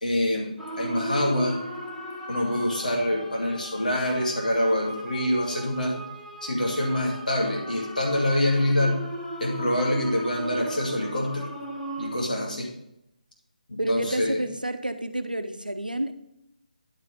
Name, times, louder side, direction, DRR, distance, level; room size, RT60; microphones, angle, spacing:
voice 1, 0.0-1.6 2.3-6.0 6.4-9.0 9.4-11.5 12.0-12.7 13.7-14.4, left 1 dB, 70° left, -1 dB, 2.3 m, -25 dB
sound 1, 0.6-12.1, right 1 dB, 5° left, 1.0 m, -38 dB
voice 2, 13.8-16.1, right 1 dB, 90° right, 9 dB, 0.9 m, -29 dB
10.0 x 5.6 x 5.0 m, 0.82 s
figure-of-eight pair, 150°, 5 cm